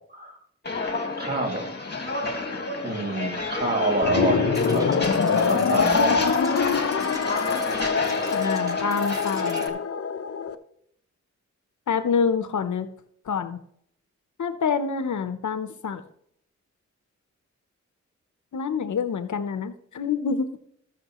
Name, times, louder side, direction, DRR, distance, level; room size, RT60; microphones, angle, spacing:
Walk footsteps, 0.6-9.7, left 3 dB, 35° left, 1.9 m, -30 dB
voice 1, 1.2-1.7 2.8-4.9 5.3-6.4, right 2 dB, 30° right, 1 dB, 2.6 m, -27 dB
sound 1, 4.0-10.5, left 6 dB, 50° left, 0.8 m, -24 dB
sound 2, 4.5-9.7, equal, 10° right, 1.6 m, -42 dB
voice 2, 8.3-9.8 11.9-12.9 13.3-13.6 14.4-16.0 18.5-20.6, left 6 dB, 80° left, 11 dB, 0.9 m, -27 dB
19.0 x 6.7 x 3.1 m, 0.69 s
wide cardioid pair, 85°, 29 cm